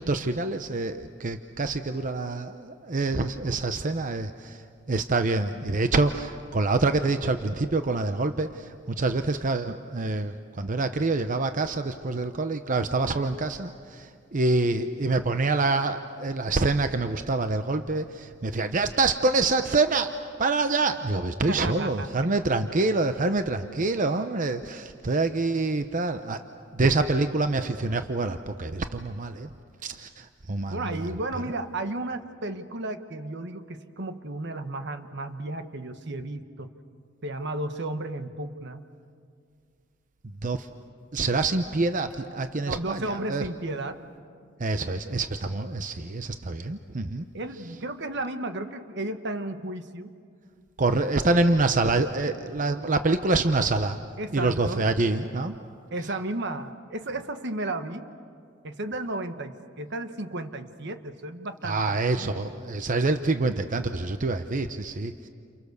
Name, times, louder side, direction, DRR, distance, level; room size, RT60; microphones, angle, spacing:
voice 1, 0.0-4.6 4.9-20.1 20.4-26.4 26.7-29.5 29.8-31.1 40.4-40.7 41.1-43.4 44.6-47.2 50.8-54.0 54.3-55.5 61.6-65.3, right 3 dB, 45° right, 8 dB, 0.8 m, -26 dB
voice 2, 21.5-22.1 22.6-22.7 30.7-36.7 37.2-38.8 42.7-44.0 47.3-50.1 50.8-51.0 54.2-54.8 55.9-58.1 58.6-62.4, right 2 dB, 60° right, 8 dB, 1.3 m, -33 dB
29.5 x 28.5 x 6.7 m, 2.2 s
head